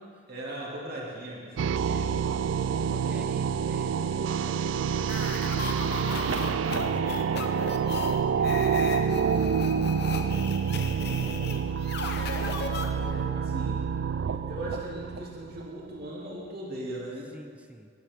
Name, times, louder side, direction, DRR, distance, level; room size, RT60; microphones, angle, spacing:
voice 1, 0.3-1.6 12.9-13.8 14.3-17.3, right 1 dB, 55° right, -4 dB, 2.5 m, -38 dB
voice 2, 1.6-5.5 6.2-9.7 10.0-11.5 17.3-17.9, equal, 5° right, 5 dB, 0.6 m, -48 dB
sound 1, 1.6-15.7, right 7 dB, 70° right, 0.3 m, -28 dB
sound 2, 5.0-13.3, left 3 dB, 60° left, 1.0 m, -36 dB
18.5 x 8.8 x 3.6 m, 2.1 s
head